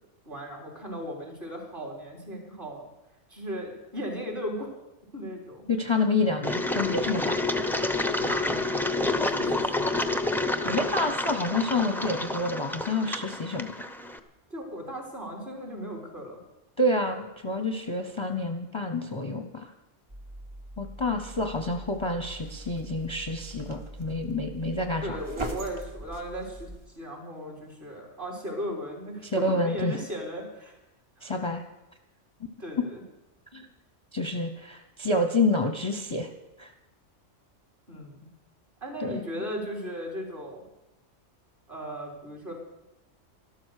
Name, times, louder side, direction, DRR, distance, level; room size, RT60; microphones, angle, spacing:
voice 1, 0.3-2.8 3.3-4.7 5.1-5.6 8.1-8.6 9.2-10.0 14.5-16.4 25.0-26.7 27.0-30.7 31.2-31.4 32.6-33.0 33.5-33.6 37.9-38.3 38.8-40.6 41.7-42.5, equal, 45° right, -2 dB, 4.0 m, -37 dB
voice 2, 5.7-7.4 10.6-13.7 16.8-19.7 20.8-25.2 29.2-30.0 31.2-31.6 32.8-32.9 34.1-36.3 36.6-36.7 39.0-39.2, left 2 dB, 25° left, 6 dB, 0.8 m, -28 dB
Engine, 6.4-14.2, left 2 dB, ahead, 0.5 m, -28 dB
sound 1, 20.1-26.9, right 1 dB, 25° right, 1.0 m, -41 dB
12.5 x 12.5 x 6.5 m, 0.99 s
omnidirectional pair, 1.3 m